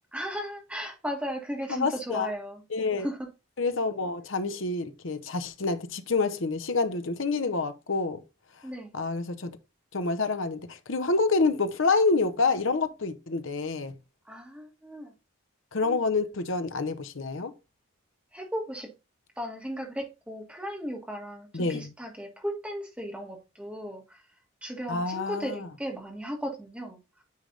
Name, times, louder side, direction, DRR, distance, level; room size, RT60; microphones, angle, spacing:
voice 1, 0.1-2.6 3.0-3.3 8.6-9.0 14.3-15.1 18.3-18.9 19.4-24.2 24.6-27.0, equal, 5° right, 1.5 m, -36 dB
voice 2, 1.7-2.3 2.7-3.1 3.6-8.2 8.9-9.5 9.9-13.9 15.7-17.5 21.5-21.9 24.9-25.7, left 3 dB, 70° left, 0.8 m, -27 dB
9.5 x 3.4 x 3.9 m
head